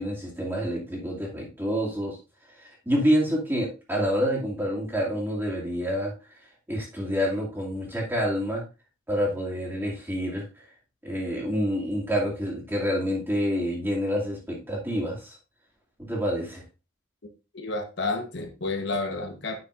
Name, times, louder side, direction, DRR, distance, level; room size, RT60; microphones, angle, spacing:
voice 1, 0.0-2.2 2.6-6.1 6.7-8.6 9.1-10.4 11.0-15.4 16.0-16.6, equal, 10° right, -3 dB, 2.4 m, -27 dB
voice 2, 17.5-19.6, left 3 dB, 60° left, 4 dB, 1.1 m, -30 dB
9.8 x 6.4 x 2.5 m, 0.30 s
head